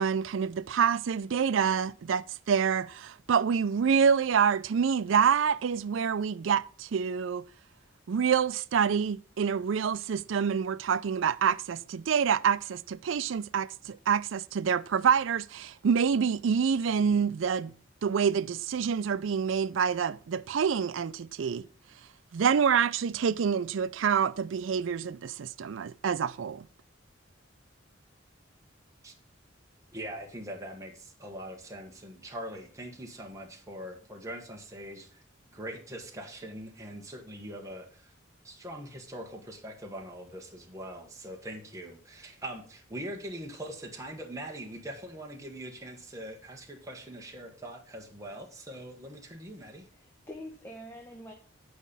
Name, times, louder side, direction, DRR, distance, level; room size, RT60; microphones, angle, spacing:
voice 1, 0.0-7.4 8.1-17.7 18.0-21.7 22.3-26.6, right 7 dB, 70° right, 0.4 m, -27 dB
voice 2, 29.9-35.2 35.5-38.1 38.4-49.9, right 1 dB, 15° right, 1.3 m, -42 dB
voice 3, 49.6-51.3, equal, 10° left, 1.1 m, -45 dB
9.4 x 5.1 x 5.4 m
head